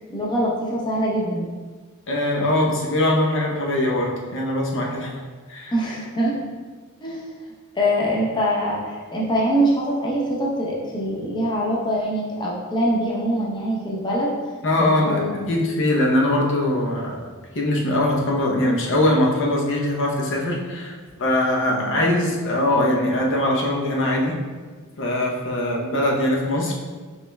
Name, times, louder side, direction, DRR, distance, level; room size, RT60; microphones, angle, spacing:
voice 1, 0.1-1.5 5.7-6.4 7.0-7.2 7.7-14.3 14.8-15.5 21.7-22.0, equal, 20° left, -4 dB, 0.7 m, -24 dB
voice 2, 2.1-5.2 5.5-5.7 14.6-17.3 17.5-24.4 25.0-26.7, left 1 dB, 60° left, -2 dB, 0.8 m, -22 dB
5.8 x 3.1 x 2.2 m, 1.5 s
head